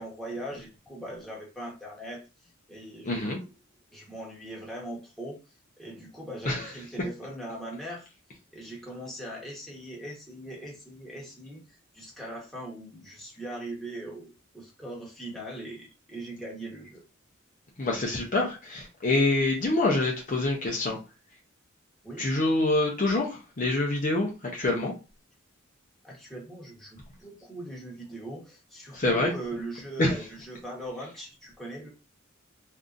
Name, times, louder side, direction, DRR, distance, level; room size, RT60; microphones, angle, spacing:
voice 1, 0.0-3.5 3.9-5.4 5.8-8.1 8.5-11.6 11.9-17.0 22.0-22.2 26.0-31.9, right 1 dB, ahead, 1.2 m, -40 dB
voice 2, 3.1-3.4 6.4-6.7 17.8-21.0 22.2-24.9 28.9-29.3 30.0-30.2, left 2 dB, 40° left, 0.7 m, -26 dB
3.7 x 2.7 x 2.5 m
head